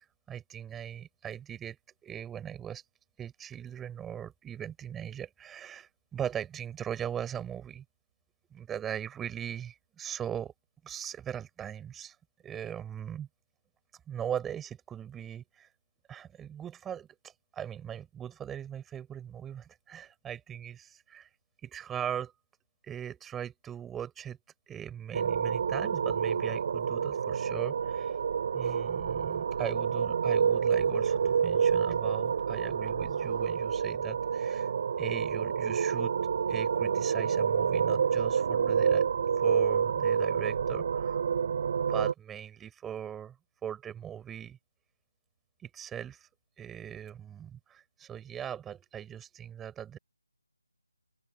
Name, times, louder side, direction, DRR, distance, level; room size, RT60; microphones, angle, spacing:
voice 1, 0.0-1.8 2.0-2.8 3.2-7.8 8.5-10.5 10.8-12.2 12.4-13.3 14.1-15.7 16.1-21.3 21.6-22.3 22.8-24.4 24.7-28.2 28.5-34.7 35.0-36.1 36.5-39.1 39.4-41.2 41.7-43.4 43.6-44.6 45.6-46.3 46.6-50.0, right 9 dB, 5° right, 6.2 m, -39 dB
sound 1, 25.1-42.1, right 7 dB, 35° right, 7.5 m, -28 dB
open air
figure-of-eight pair, 170°, 0 cm